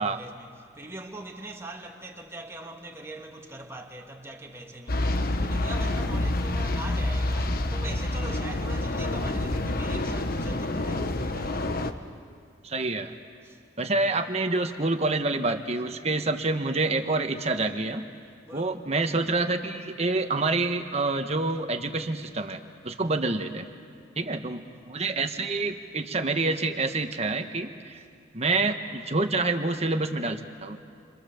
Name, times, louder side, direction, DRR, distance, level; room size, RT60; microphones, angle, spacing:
voice 1, 0.0-11.8 13.4-13.6 18.4-18.9 23.0-23.3 24.7-24.8 28.0-28.1, right 2 dB, 15° right, 2.1 m, -42 dB
sound 1, 4.9-11.9, left 2 dB, 50° left, 1.3 m, -28 dB
voice 2, 12.6-13.1 13.8-18.0 18.5-23.7 24.2-28.0 28.3-30.8, right 3 dB, 35° right, 1.4 m, -27 dB
30.0 x 26.0 x 7.2 m
head